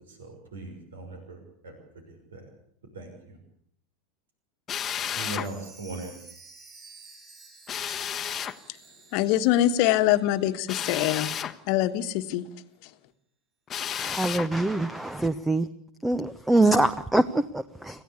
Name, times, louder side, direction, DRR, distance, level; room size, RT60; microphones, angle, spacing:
voice 1, 0.1-1.7 2.1-2.4 2.9-3.4 5.1-6.1, right 2 dB, 70° right, 5 dB, 6.0 m, -39 dB
Drill, 4.7-5.5 7.7-8.6 10.7-11.6 13.7-14.5, left 9 dB, 30° left, 1.2 m, -32 dB
Chime, 4.8-10.7 11.0-11.1 11.7-11.8, right 4 dB, 35° right, 7.5 m, -52 dB
voice 2, 9.1-11.3 11.7-12.5, left 13 dB, 50° left, 10 dB, 1.5 m, -23 dB
voice 3, 13.9-15.7 16.0-18.0, right 2 dB, 5° right, 16 dB, 0.9 m, -24 dB
26.5 x 16.0 x 8.5 m, 0.68 s
figure-of-eight pair, 85°, 0 cm